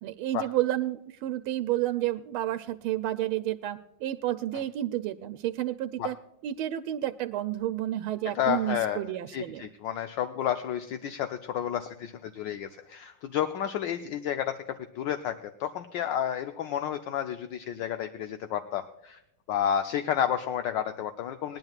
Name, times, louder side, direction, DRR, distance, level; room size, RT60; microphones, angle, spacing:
voice 1, 0.0-6.1 6.4-9.6, right 13 dB, 90° right, 10 dB, 1.5 m, -30 dB
voice 2, 8.3-9.0 9.3-19.2 19.5-21.6, left 9 dB, 70° left, 8 dB, 1.3 m, -31 dB
20.5 x 10.5 x 2.4 m, 0.83 s
omnidirectional pair, 2.2 m